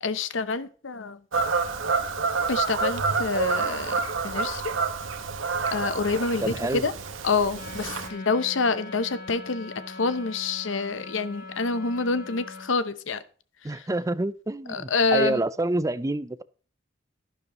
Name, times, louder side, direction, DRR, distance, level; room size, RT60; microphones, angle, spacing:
voice 1, 0.0-1.2 2.5-4.7 5.7-6.9 7.2-13.2 13.6-13.9 14.7-15.4, left 4 dB, 70° left, 13 dB, 0.8 m, -27 dB
Fowl / Bird vocalization bird call bird song, 1.3-8.1, right 4 dB, 85° right, 1.4 m, -28 dB
voice 2, 6.4-6.8 13.6-16.4, right 2 dB, 15° right, 16 dB, 0.5 m, -27 dB
Wind instrument woodwind instrument, 7.5-12.7, left 3 dB, 50° left, 4.3 m, -42 dB
11.5 x 11.0 x 3.0 m, 0.41 s
head